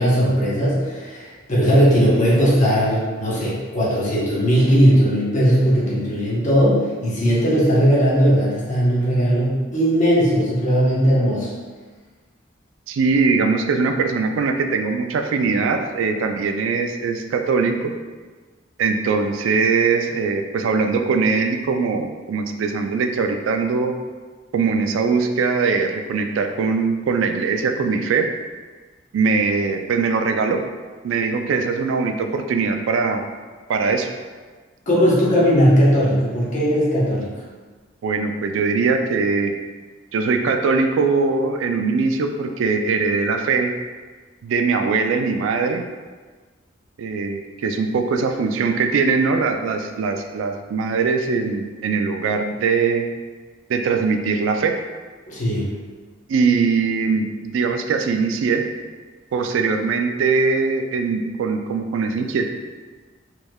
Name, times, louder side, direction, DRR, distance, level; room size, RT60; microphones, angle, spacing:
voice 1, 0.0-11.5 34.9-37.3 55.3-55.7, equal, 40° left, -7 dB, 0.9 m, -18 dB
voice 2, 12.9-17.9 18.8-23.9 24.5-28.3 29.1-30.6 31.0-33.2 33.7-34.1 38.0-39.6 40.1-43.7 44.4-45.8 47.0-53.0 53.7-54.8 56.3-58.6 59.3-62.5, right 4 dB, 75° right, 5 dB, 0.3 m, -21 dB
3.4 x 3.1 x 2.2 m, 1.4 s
head